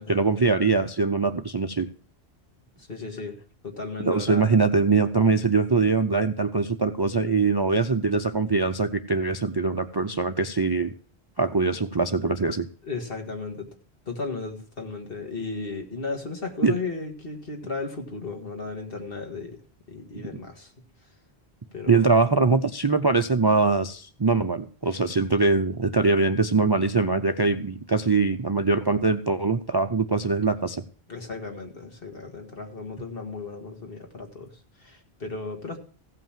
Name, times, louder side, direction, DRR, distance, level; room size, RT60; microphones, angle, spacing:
voice 1, 0.0-1.9 4.0-10.9 11.4-12.7 16.6-16.8 20.1-20.2 21.9-30.8, right 4 dB, 30° right, 9 dB, 0.5 m, -22 dB
voice 2, 2.9-3.4 3.6-4.6 12.9-13.7 14.1-19.6 19.9-20.7 21.7-22.0 31.1-34.5 34.8-35.8, left 3 dB, 60° left, 3 dB, 2.2 m, -35 dB
16.0 x 5.6 x 7.3 m, 0.41 s
omnidirectional pair, 1.1 m